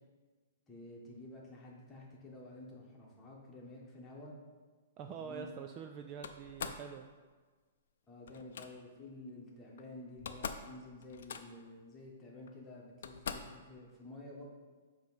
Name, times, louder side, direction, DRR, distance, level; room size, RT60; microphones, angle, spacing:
voice 1, 0.7-4.3 5.2-5.5 8.1-14.4, left 2 dB, 15° left, -4 dB, 1.3 m, -51 dB
voice 2, 5.0-7.1, right 7 dB, 25° right, 5 dB, 0.3 m, -45 dB
Slam, 6.2-6.9 8.3-8.7 9.8-9.9 10.1-10.7 11.0-11.7 12.5-12.6 13.0-13.6, left 6 dB, 70° left, 0.5 m, -43 dB
7.2 x 3.0 x 5.5 m, 1.4 s
hypercardioid pair, 155°, 0 cm